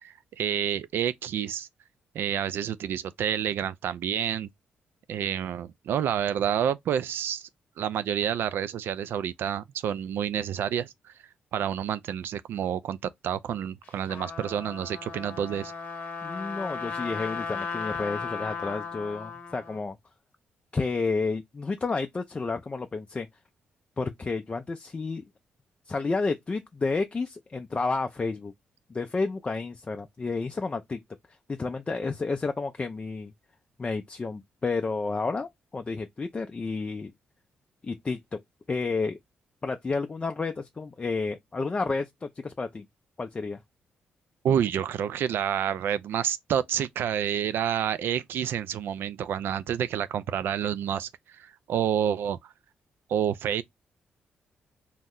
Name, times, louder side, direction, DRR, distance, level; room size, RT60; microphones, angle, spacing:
voice 1, 0.0-1.7 2.1-4.5 5.1-7.5 7.8-11.1 11.5-13.0 13.2-15.7 44.4-51.1 51.4-52.4 53.1-53.6, right 9 dB, 75° right, 0.3 m, -29 dB
Trumpet, 13.8-19.8, left 4 dB, 55° left, 0.8 m, -36 dB
voice 2, 16.2-20.0 20.7-23.3 24.0-25.2 25.9-28.5 28.9-31.0 31.5-33.3 33.8-37.1 37.8-38.4 38.7-39.2 39.6-42.9 43.2-43.6, left 4 dB, 30° left, 0.3 m, -31 dB
2.7 x 2.1 x 3.5 m
cardioid pair, 75°, 4 cm